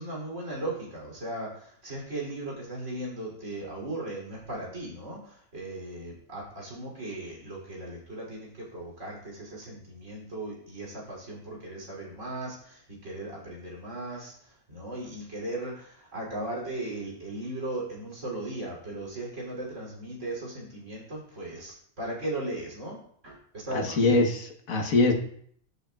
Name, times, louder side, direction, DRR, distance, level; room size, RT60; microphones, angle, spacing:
voice 1, 0.0-23.0 23.2-24.1, right 1 dB, 65° right, -4 dB, 3.3 m, -37 dB
voice 2, 23.7-25.1, left 2 dB, 90° left, 3 dB, 1.6 m, -23 dB
11.5 x 6.5 x 2.3 m, 0.63 s
omnidirectional pair, 1.4 m